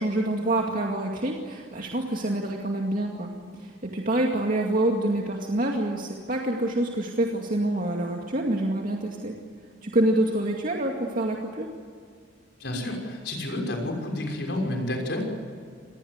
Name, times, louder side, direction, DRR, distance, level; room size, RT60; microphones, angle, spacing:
voice 1, 0.0-9.3 9.8-11.7, right 1 dB, 50° right, 0 dB, 2.3 m, -26 dB
voice 2, 12.6-15.2, left 1 dB, 70° left, 2 dB, 6.2 m, -30 dB
27.0 x 19.5 x 8.2 m, 2.1 s
head